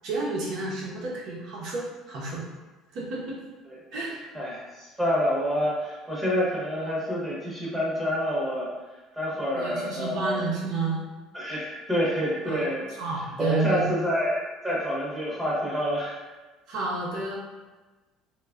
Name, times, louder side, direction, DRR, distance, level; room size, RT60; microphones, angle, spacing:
voice 1, 0.0-2.4 2.9-3.4 3.9-4.2 9.5-11.0 12.5-12.6 13.0-13.9 16.7-17.3, right 3 dB, 65° right, -4 dB, 0.8 m, -30 dB
voice 2, 4.3-8.7 9.1-10.4 11.3-12.8 13.4-16.2, equal, 10° right, -6 dB, 0.9 m, -27 dB
3.2 x 2.3 x 2.3 m, 1.2 s
cardioid pair, 125°, 0 cm